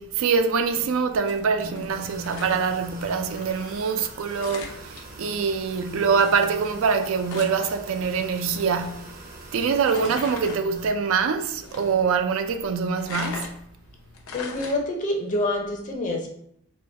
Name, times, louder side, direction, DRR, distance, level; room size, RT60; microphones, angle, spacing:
voice 1, 0.0-9.1 9.5-13.6, right 5 dB, 65° right, 0.4 m, -24 dB
sound 1, 1.0-15.3, left 4 dB, 80° left, 0.7 m, -43 dB
sound 2, 1.9-10.9, right 2 dB, 45° right, 0.7 m, -44 dB
voice 2, 14.3-16.3, left 1 dB, 35° left, 0.6 m, -27 dB
4.2 x 2.3 x 3.3 m
head